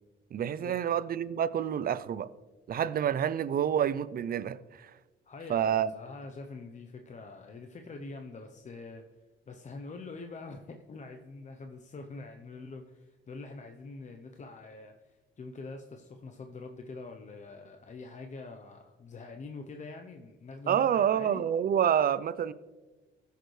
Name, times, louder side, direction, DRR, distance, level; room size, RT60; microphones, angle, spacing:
voice 1, 0.3-2.3 2.7-4.9 5.5-5.9 20.7-22.5, right 9 dB, 50° right, 0.5 m, -28 dB
voice 2, 5.2-9.0 9.5-21.5, left 3 dB, 35° left, 0.8 m, -45 dB
16.0 x 6.6 x 3.2 m
cardioid pair, 90°, 20 cm